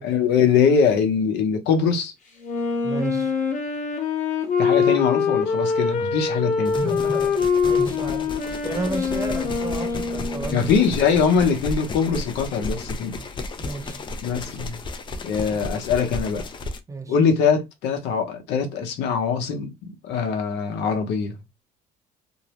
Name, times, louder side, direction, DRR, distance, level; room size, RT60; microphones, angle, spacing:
voice 1, 0.0-2.1 4.6-6.9 10.5-13.2 14.2-14.8 15.2-16.4 17.1-21.4, left 6 dB, 85° left, 0.7 m, -22 dB
Wind instrument woodwind instrument, 2.4-11.0, left 5 dB, 50° left, 0.9 m, -24 dB
voice 2, 2.8-3.3 6.7-10.7 13.6-14.0 16.9-17.1, right 3 dB, 20° right, 0.6 m, -32 dB
sound 1, 6.6-16.8, left 3 dB, 30° left, 0.4 m, -33 dB
2.6 x 2.0 x 2.9 m
cardioid pair, 110°, 17 cm